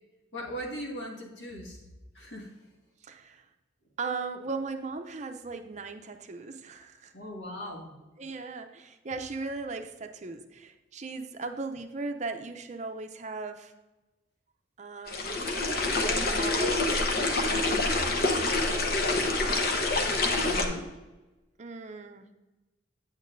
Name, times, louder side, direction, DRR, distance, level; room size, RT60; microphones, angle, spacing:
voice 1, 0.3-1.8 2.1-2.5 7.1-7.9 20.2-20.9, equal, 70° left, -2 dB, 2.1 m, -39 dB
voice 2, 3.0-3.4 4.0-7.1 8.2-13.7 14.8-15.4 16.1-19.6 21.6-22.3, right 4 dB, 40° right, 6 dB, 0.6 m, -38 dB
sound 1, 15.1-20.7, left 2 dB, 50° left, 0.9 m, -26 dB
8.8 x 8.5 x 2.6 m, 1.1 s
head